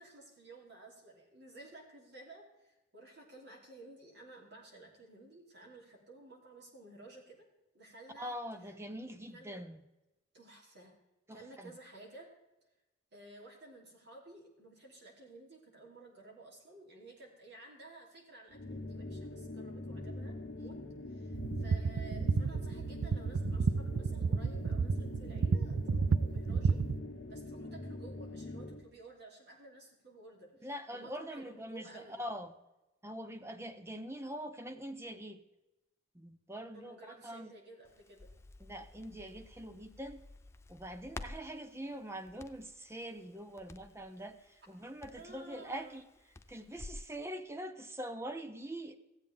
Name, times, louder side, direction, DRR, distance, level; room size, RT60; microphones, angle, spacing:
voice 1, 0.0-7.4 7.7-8.4 9.3-9.6 10.3-10.9 11.3-12.3 13.1-20.8 21.1-26.8 27.3-32.2 36.7-38.3 45.1-46.0, right 2 dB, 55° right, -1 dB, 3.0 m, -54 dB
voice 2, 8.2-9.8 11.3-11.7 30.6-32.5 33.0-35.4 36.1-37.5 38.6-40.2 40.7-46.0 46.5-49.0, equal, 15° right, 8 dB, 0.7 m, -44 dB
sound 1, 18.5-28.9, left 2 dB, 65° left, 1.1 m, -44 dB
sound 2, 21.3-27.0, right 5 dB, 80° right, 0.4 m, -31 dB
Crackle, 37.9-47.1, left 2 dB, 15° left, 0.4 m, -52 dB
15.5 x 8.1 x 3.5 m, 1.0 s
head